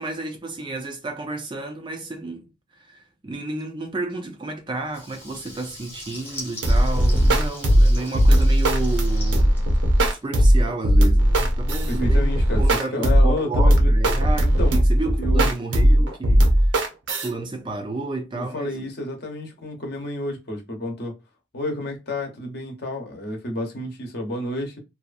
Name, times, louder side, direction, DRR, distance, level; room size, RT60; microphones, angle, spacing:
voice 1, 0.0-9.6 10.2-16.5 17.2-18.9, right 2 dB, 25° right, 0.3 m, -31 dB
Water tap faucet / Liquid, 4.8-10.4, left 1 dB, 10° left, 0.8 m, -41 dB
sound 1, 6.6-17.3, equal, 70° right, 0.6 m, -18 dB
voice 2, 11.9-13.9 14.4-14.8 15.2-15.5 18.3-21.1 21.5-24.8, left 1 dB, 55° left, 0.8 m, -30 dB
2.6 x 2.3 x 2.4 m
head